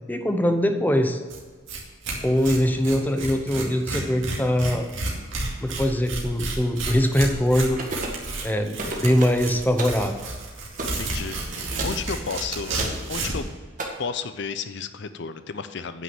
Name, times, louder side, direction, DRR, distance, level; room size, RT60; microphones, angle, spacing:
voice 1, 0.1-1.2 2.2-4.9 5.6-7.8 8.4-10.1, equal, 10° left, 6 dB, 0.7 m, -22 dB
Tearing, 1.3-1.4 1.7-13.5, right 2 dB, 75° right, 2.4 m, -31 dB
sound 1, 7.8-8.2 8.8-9.4 9.8-10.0 10.8-11.0 11.8-12.0 12.8-13.0 13.8-13.9, right 2 dB, 40° right, 1.6 m, -31 dB
voice 2, 10.8-11.4 11.8-12.8 13.1-13.5 14.0-16.0, left 5 dB, 60° left, 11 dB, 0.6 m, -32 dB
9.6 x 6.1 x 7.7 m, 1.5 s
head